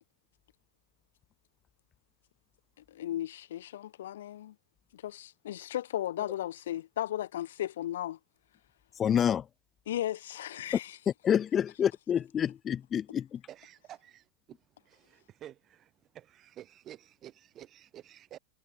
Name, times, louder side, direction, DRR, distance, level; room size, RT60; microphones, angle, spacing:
voice 1, 2.9-4.5 4.9-8.2 9.9-11.0, left 12 dB, 60° left, 1.6 m, -35 dB
voice 2, 9.0-9.5 11.2-13.4, left 9 dB, 25° left, 1.4 m, -28 dB
voice 3, 13.6-14.1 15.4-15.5 16.1-18.4, right 11 dB, 30° right, 4.3 m, -49 dB
figure-of-eight pair, 90°, 0 cm